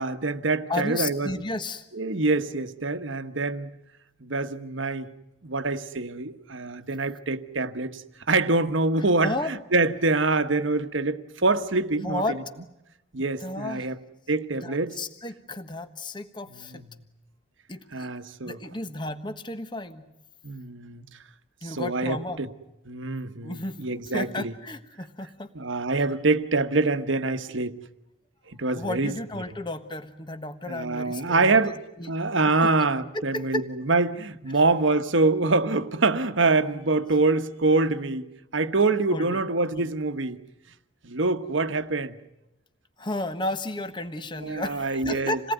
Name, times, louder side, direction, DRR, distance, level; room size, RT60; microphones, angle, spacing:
voice 1, 0.0-1.3 1.9-3.7 4.2-5.1 5.4-12.4 13.1-14.0 14.3-15.0 16.5-17.0 17.9-18.6 20.4-21.0 21.6-22.5 22.8-24.5 25.5-27.8 28.5-29.1 30.7-31.8 32.1-40.4 41.0-42.2 44.4-45.4, right 3 dB, 70° right, 1.3 m, -25 dB
voice 2, 0.7-1.8 9.1-9.5 12.0-12.4 13.4-13.9 14.6-16.8 17.7-18.1 18.4-20.1 21.6-22.4 23.4-25.5 28.7-31.6 32.0-32.1 32.6-32.9 33.1-33.7 34.5-34.6 39.1-39.4 39.7-39.9 43.0-45.5, left 2 dB, 25° left, 1.3 m, -33 dB
28.0 x 18.5 x 9.3 m
head